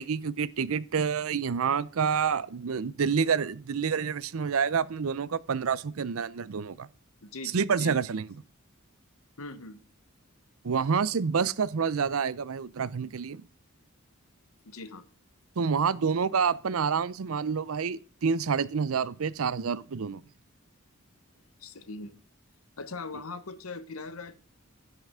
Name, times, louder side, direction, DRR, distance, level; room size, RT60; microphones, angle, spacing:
voice 1, 0.0-6.9 7.5-8.3 10.6-13.4 15.6-20.2, right 6 dB, 80° right, 0.5 m, -28 dB
voice 2, 7.2-8.0 9.4-9.8 14.6-15.1 21.6-22.2 22.8-24.4, left 3 dB, 85° left, 1.0 m, -40 dB
15.5 x 5.8 x 3.6 m
head